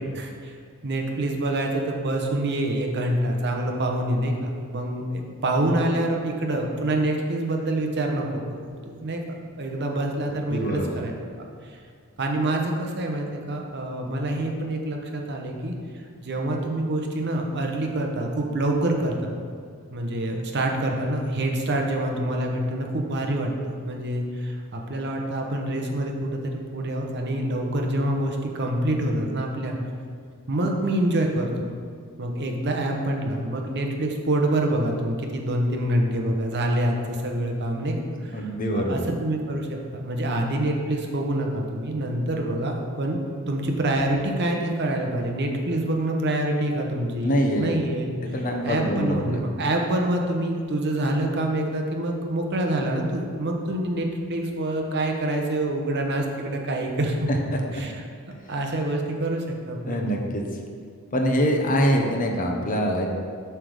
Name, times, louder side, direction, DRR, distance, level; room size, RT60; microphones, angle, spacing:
voice 1, 0.1-0.6 0.8-9.2 9.6-11.1 11.4-11.8 12.2-19.3 19.9-29.8 30.5-31.7 32.2-37.9 38.2-38.5 38.7-43.2 43.5-48.4 48.6-57.3 57.7-58.0 58.5-60.0, right 1 dB, 50° right, 1 dB, 0.8 m, -26 dB
voice 2, 10.5-11.0 38.3-39.0 47.2-47.7 48.3-49.4 57.3-57.4 59.9-60.4 61.1-63.1, equal, 35° left, 1 dB, 0.8 m, -24 dB
7.6 x 3.4 x 6.3 m, 2.1 s
head